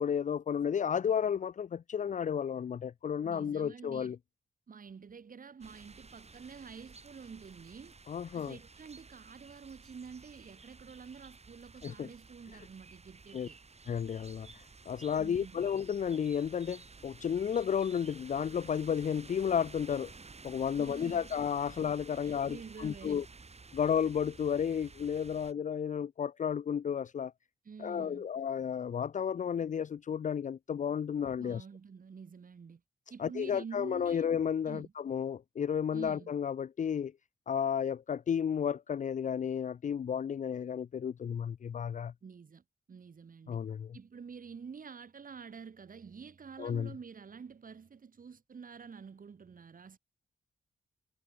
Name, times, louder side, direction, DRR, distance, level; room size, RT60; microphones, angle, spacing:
voice 1, 0.0-4.2 8.1-8.6 11.8-12.1 13.3-13.5 13.9-20.1 20.4-23.2 23.7-27.3 27.8-31.6 33.2-37.1 37.5-42.1 43.5-44.0 46.6-46.9, left 8 dB, 50° left, 0.5 m, -32 dB
voice 2, 3.2-4.2 4.7-8.0 8.3-13.6 15.2-15.6 20.8-21.3 22.3-23.2 27.6-28.3 31.4-32.8 33.1-34.3 34.6-34.9 35.9-36.3 42.2-42.6 42.9-43.6 43.9-50.0, right 6 dB, 60° right, 4.6 m, -48 dB
sound 1, 5.6-25.5, right 4 dB, 40° right, 5.2 m, -53 dB
cardioid pair, 50°, 16 cm